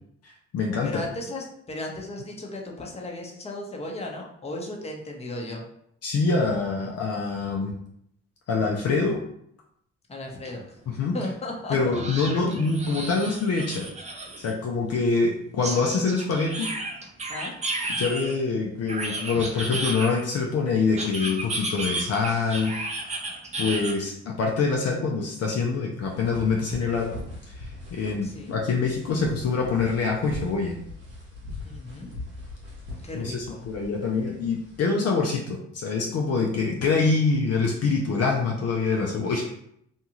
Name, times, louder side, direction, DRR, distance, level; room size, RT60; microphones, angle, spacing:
voice 1, 0.2-1.0 6.0-7.7 8.5-9.2 10.9-11.2 11.7-13.9 14.4-16.7 18.0-22.7 23.6-27.2 27.6-30.8 33.1-39.5, left 4 dB, 50° left, -1 dB, 0.6 m, -25 dB
voice 2, 0.8-5.6 10.1-10.8 11.1-11.9 17.3-17.5 28.2-28.5 31.6-32.1 33.0-33.6, left 2 dB, 20° left, 0 dB, 0.8 m, -35 dB
sound 1, 10.4-10.5 10.9-11.0 11.9-14.5 15.6-18.3 18.9-20.4 21.0-23.9, right 2 dB, 20° right, 0.5 m, -33 dB
sound 2, 26.0-34.8, left 2 dB, 90° right, 0.9 m, -41 dB
2.6 x 2.3 x 2.9 m, 0.72 s
supercardioid pair, 60°, 31 cm